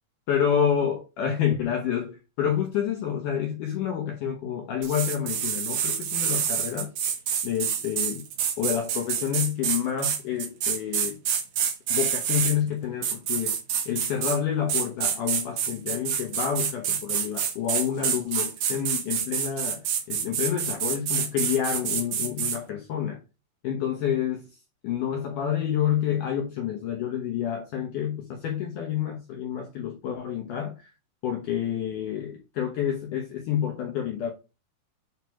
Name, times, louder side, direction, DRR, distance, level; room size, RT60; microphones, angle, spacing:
voice 1, 0.3-6.9 7.4-8.2 8.6-11.2 11.9-13.6 13.9-23.2 23.6-24.4 24.8-30.9 31.2-34.3, left 9 dB, 85° left, 1.8 m, -28 dB
sound 1, 4.8-12.5 13.0-14.4 14.7-22.6, right 8 dB, 90° right, 1.6 m, -27 dB
8.7 x 3.1 x 4.6 m
omnidirectional pair, 4.9 m